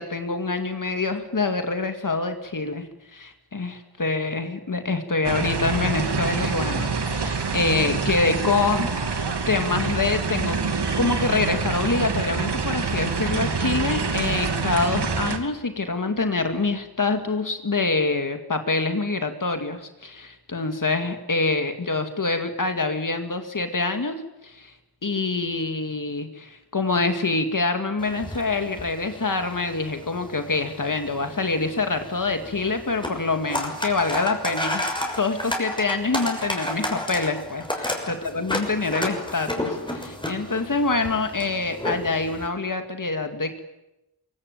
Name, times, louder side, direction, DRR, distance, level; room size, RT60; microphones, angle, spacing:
voice 1, 0.0-10.6 11.0-24.2 24.4-24.7 25.0-43.6, left 3 dB, 50° left, 6 dB, 2.3 m, -26 dB
sound 1, 5.2-15.4, right 4 dB, 85° right, 2.6 m, -26 dB
sound 2, 28.0-42.5, left 1 dB, 10° left, 6.5 m, -32 dB
25.0 x 24.0 x 9.2 m, 0.94 s
wide cardioid pair, 85°, 39 cm